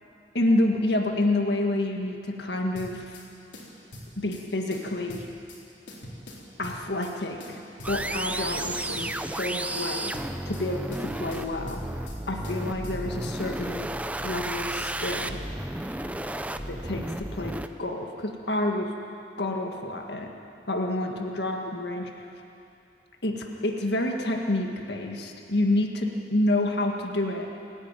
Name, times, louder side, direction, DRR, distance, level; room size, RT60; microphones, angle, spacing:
voice 1, 0.3-3.2 4.2-5.3 6.6-7.6 7.9-10.1 10.4-11.8 12.3-13.9 14.2-15.4 16.7-18.9 19.4-20.3 20.7-22.2 23.2-27.5, left 1 dB, 65° left, 2 dB, 1.8 m, -28 dB
sound 1, 2.7-3.3 3.5-4.4 4.7-5.6 5.9-7.1 7.4-8.3 8.6-9.5 9.7-10.7 10.9-12.2 12.4-13.3, left 1 dB, 85° left, 3.9 m, -43 dB
sound 2, 7.8-17.7, right 1 dB, 10° right, 0.6 m, -33 dB
28.5 x 10.0 x 9.1 m, 2.6 s
head